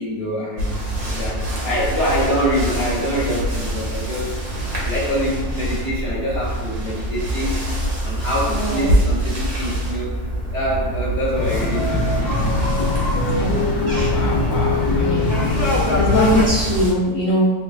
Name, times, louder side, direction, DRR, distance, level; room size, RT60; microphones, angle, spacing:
voice 1, 0.0-4.4 4.8-7.6 8.0-10.2 10.5-13.0, equal, 15° right, -9 dB, 1.0 m, -25 dB
sound 1, 0.6-16.9, right 1 dB, 60° right, 1.3 m, -25 dB
voice 2, 8.5-9.0 13.3-13.6 14.1-17.5, equal, 65° left, -7 dB, 0.9 m, -22 dB
sound 2, 11.3-16.5, left 3 dB, 40° left, 1.1 m, -21 dB
6.4 x 2.3 x 2.2 m, 1.1 s
omnidirectional pair, 2.0 m